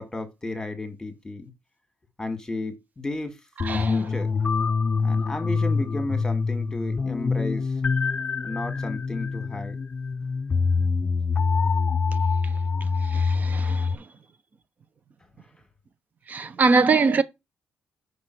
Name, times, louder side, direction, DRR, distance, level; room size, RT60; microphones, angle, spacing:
voice 1, 0.0-1.5 2.2-3.4 3.8-4.3 5.0-7.7 8.4-9.8, left 2 dB, 15° left, 1.9 m, -33 dB
sound 1, 3.6-13.9, left 4 dB, 30° left, 0.4 m, -25 dB
voice 2, 3.6-4.0 13.1-13.9 16.3-17.2, right 4 dB, 40° right, 0.8 m, -22 dB
6.0 x 5.5 x 4.6 m
cardioid pair, 120°, 5 cm